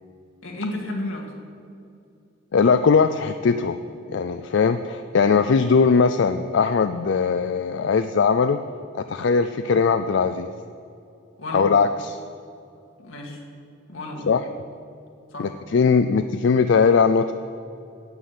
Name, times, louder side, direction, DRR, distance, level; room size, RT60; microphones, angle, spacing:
voice 1, 0.4-1.3 11.4-11.7 13.0-13.4 13.9-14.3 15.3-15.5, left 2 dB, 85° left, 0 dB, 2.0 m, -32 dB
voice 2, 2.5-3.8 4.1-8.6 8.9-10.5 11.5-12.2 14.3-14.4 15.4-17.3, left 5 dB, 65° left, 9 dB, 0.4 m, -20 dB
9.6 x 8.4 x 7.9 m, 2.6 s
head